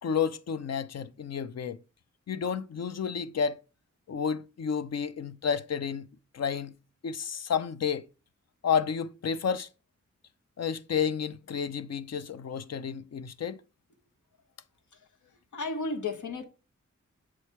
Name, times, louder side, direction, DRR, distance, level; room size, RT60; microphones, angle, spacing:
voice 1, 0.0-1.8 2.3-3.6 4.1-6.1 6.3-6.7 7.0-8.0 8.6-9.7 10.6-13.6, left 7 dB, 60° left, 0.6 m, -31 dB
voice 2, 14.9-16.4, left 3 dB, 85° left, 1.0 m, -35 dB
7.3 x 3.2 x 4.4 m
cardioid pair, 55°, 29 cm